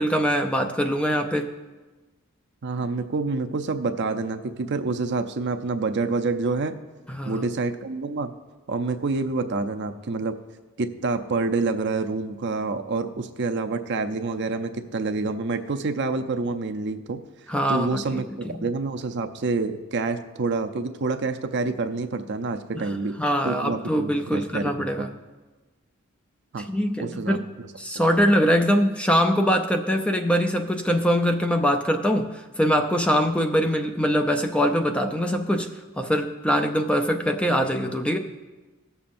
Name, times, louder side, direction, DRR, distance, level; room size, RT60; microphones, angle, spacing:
voice 1, 0.0-1.5 7.1-7.5 17.5-18.2 22.8-22.9 23.2-25.1 26.7-27.5 27.8-35.7 36.0-38.2, equal, 5° left, 5 dB, 0.4 m, -23 dB
voice 2, 2.6-6.8 7.2-8.3 8.7-10.4 10.8-17.2 17.7-23.1 23.4-25.1 26.5-26.7 27.0-27.4, right 3 dB, 55° right, 7 dB, 0.5 m, -27 dB
17.0 x 7.0 x 2.6 m, 1.2 s
head